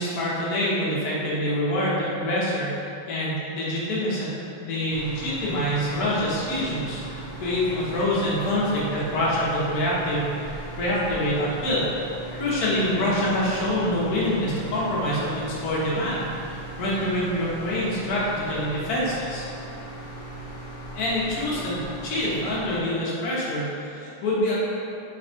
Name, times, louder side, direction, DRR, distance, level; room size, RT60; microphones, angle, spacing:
voice 1, 0.0-4.3 4.6-11.9 12.3-19.5 20.9-24.6, left 1 dB, 60° left, -7 dB, 1.3 m, -26 dB
sound 1, 4.9-22.8, right 2 dB, 80° left, 1.5 m, -38 dB
4.2 x 2.3 x 4.0 m, 2.6 s
omnidirectional pair, 2.2 m